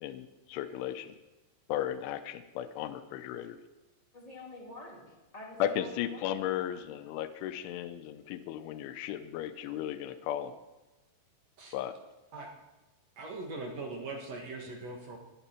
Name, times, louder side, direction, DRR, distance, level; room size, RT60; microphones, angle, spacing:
voice 1, 0.0-1.1 1.7-3.6 5.6-10.5 11.7-11.9, left 11 dB, 90° left, 9 dB, 3.2 m, -35 dB
voice 2, 4.1-6.4, left 1 dB, 15° left, -3 dB, 1.5 m, -47 dB
voice 3, 13.2-15.2, right 3 dB, 60° right, 1 dB, 1.7 m, -40 dB
17.5 x 12.0 x 4.4 m, 1.1 s
omnidirectional pair, 5.3 m